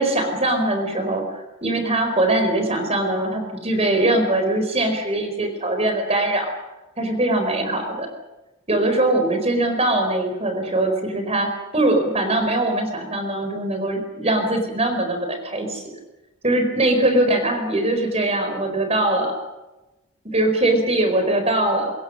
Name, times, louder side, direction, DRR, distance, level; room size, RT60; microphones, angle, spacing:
voice 1, 0.0-6.5 7.0-8.1 8.7-15.8 16.4-19.3 20.3-21.9, right 1 dB, 30° right, 6 dB, 4.6 m, -21 dB
25.5 x 22.0 x 6.5 m, 1.0 s
head